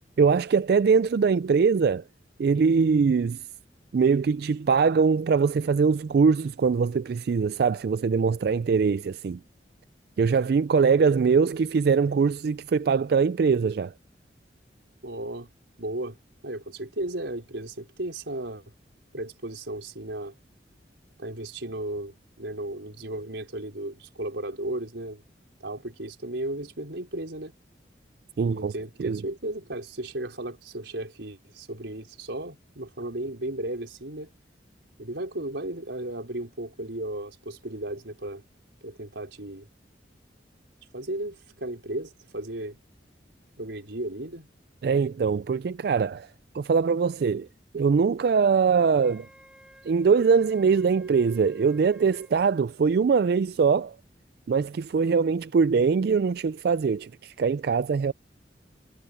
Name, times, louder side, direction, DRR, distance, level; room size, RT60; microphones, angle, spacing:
voice 1, 0.2-2.0 2.4-3.4 3.9-9.4 10.2-13.9 28.4-28.7 29.0-29.2 44.8-46.3 46.5-47.5 47.7-49.3 49.8-53.9 54.5-58.1, right 5 dB, 60° right, 0.3 m, -22 dB
voice 2, 15.0-15.5 15.8-16.2 16.4-18.6 19.1-20.3 21.2-25.2 25.6-27.5 28.4-34.3 35.0-38.4 38.8-39.7 40.9-42.8 43.6-44.5, right 1 dB, 90° right, 4.5 m, -35 dB
Wind instrument woodwind instrument, 49.0-52.4, equal, 5° right, 4.8 m, -54 dB
head